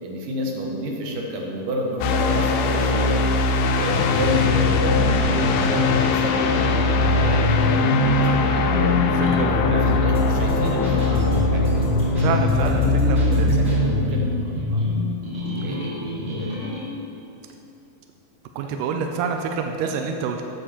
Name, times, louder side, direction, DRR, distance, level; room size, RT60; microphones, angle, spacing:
voice 1, 0.0-3.2 3.7-9.0 9.4-11.9 12.6-14.8 15.6-16.7 18.6-18.8 19.8-20.0, equal, 70° right, 0 dB, 2.6 m, -29 dB
sound 1, 2.0-14.0, left 3 dB, 85° left, 2.6 m, -21 dB
sound 2, 3.9-16.9, left 2 dB, 45° right, 2.7 m, -25 dB
voice 2, 9.3-9.9 12.2-13.5 18.6-20.4, right 6 dB, 85° right, 4 dB, 1.9 m, -27 dB
sound 3, 10.1-14.0, right 1 dB, 30° right, 1.6 m, -34 dB
9.5 x 5.8 x 6.9 m, 2.9 s
omnidirectional pair, 4.3 m